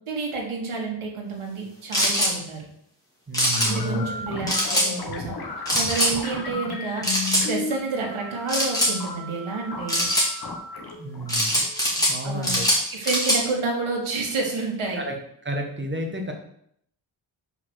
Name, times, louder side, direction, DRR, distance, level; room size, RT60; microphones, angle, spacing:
voice 1, 0.1-2.7 3.7-5.4 5.7-10.1 12.2-12.6 12.9-15.0, right 3 dB, 80° right, 0 dB, 1.9 m, -29 dB
sound 1, 1.9-2.3 3.3-3.7 4.5-4.9 5.7-6.1 7.0-7.4 8.5-8.9 9.9-10.3 11.3-12.1 12.4-13.4, equal, 5° left, 2.0 m, -22 dB
voice 2, 3.3-4.1 11.0-11.6 12.1-12.6 14.9-15.2 15.4-16.3, equal, 25° right, 2 dB, 1.2 m, -30 dB
sound 2, 3.5-12.4, left 3 dB, 50° left, 1.2 m, -35 dB
5.6 x 4.3 x 6.2 m, 0.69 s
wide cardioid pair, 155°, 49 cm